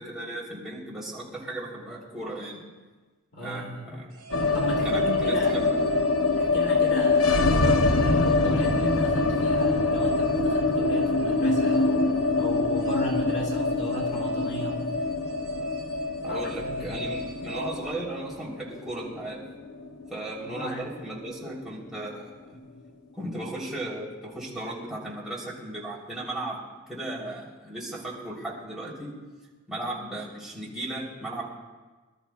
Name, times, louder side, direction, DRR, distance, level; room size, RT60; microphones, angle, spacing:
voice 1, 0.0-2.6 3.4-4.1 4.8-5.7 16.2-19.4 20.1-22.6 23.1-26.6 26.9-29.1 29.7-31.4, right 1 dB, ahead, -6 dB, 3.4 m, -36 dB
voice 2, 3.3-4.1 4.5-5.6 6.4-12.1 12.4-14.8 16.3-16.9 20.4-20.8, right 1 dB, 55° left, -3 dB, 2.3 m, -36 dB
sound 1, 4.1-18.5, left 1 dB, 40° right, 4.1 m, -36 dB
sound 2, 4.3-20.4 20.7-20.8 21.1-21.8, left 3 dB, 85° left, 0.9 m, -25 dB
25.0 x 13.0 x 2.3 m, 1.3 s
head